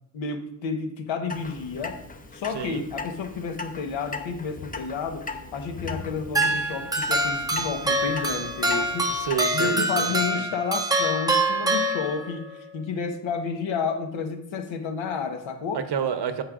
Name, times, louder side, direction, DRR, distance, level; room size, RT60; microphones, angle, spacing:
voice 1, 0.1-2.0 2.3-5.2 5.5-9.1 9.5-12.5 12.7-15.8, left 5 dB, 70° left, 6 dB, 1.2 m, -30 dB
Clock, 1.3-9.4, left 4 dB, 20° left, 0.7 m, -38 dB
voice 2, 2.5-2.8 9.1-10.4 15.7-16.4, right 7 dB, 55° right, 8 dB, 1.0 m, -29 dB
sound 1, 6.3-12.5, right 1 dB, 10° right, 1.0 m, -25 dB
14.5 x 5.5 x 2.5 m, 0.74 s
cardioid pair, 100°, 48 cm